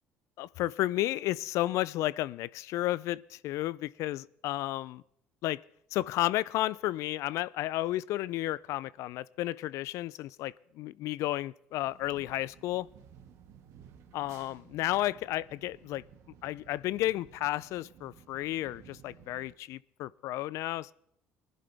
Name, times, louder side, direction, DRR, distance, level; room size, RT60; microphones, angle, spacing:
voice 1, 0.4-5.0 5.4-5.6 5.9-12.9 14.1-16.0 16.4-20.9, left 15 dB, 70° left, 0.4 m, -32 dB
sound 1, 11.7-19.5, right 8 dB, 70° right, 1.4 m, -56 dB
20.0 x 11.0 x 3.4 m
supercardioid pair, 70°, 5 cm